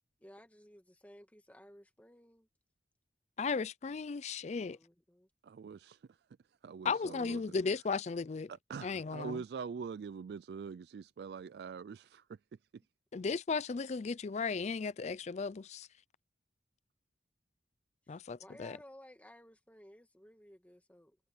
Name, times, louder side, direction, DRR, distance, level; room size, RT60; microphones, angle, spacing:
voice 1, 0.2-2.5 4.6-5.3 18.1-21.2, equal, 10° left, 1.9 m, -57 dB
voice 2, 3.4-4.8 6.8-8.5 8.8-9.4 13.1-15.9 18.1-18.8, left 4 dB, 40° left, 0.4 m, -35 dB
voice 3, 5.4-6.2 6.6-7.4 8.7-12.4 12.7-12.8, right 6 dB, 65° right, 0.3 m, -44 dB
head